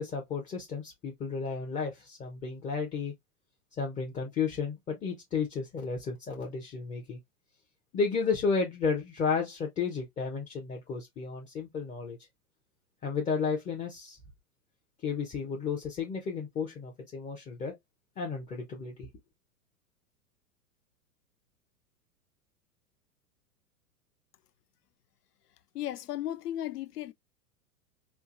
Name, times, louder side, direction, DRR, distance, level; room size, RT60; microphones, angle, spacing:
voice 1, 0.0-3.1 3.8-7.2 7.9-12.2 13.0-14.2 15.0-17.8 18.2-19.1, left 5 dB, 15° left, 0.6 m, -32 dB
voice 2, 25.7-27.1, left 12 dB, 80° left, 0.6 m, -35 dB
4.4 x 2.4 x 2.4 m
figure-of-eight pair, 100°, 46 cm